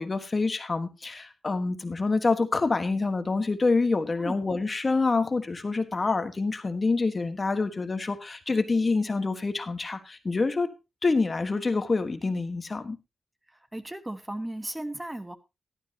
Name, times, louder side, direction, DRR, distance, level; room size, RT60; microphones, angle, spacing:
voice 1, 0.0-10.7 11.0-13.0, left 3 dB, 40° left, 9 dB, 1.5 m, -26 dB
voice 2, 13.5-15.4, right 1 dB, 15° right, 10 dB, 1.3 m, -36 dB
13.5 x 12.0 x 2.9 m, 0.25 s
cardioid pair, 75°, 0 cm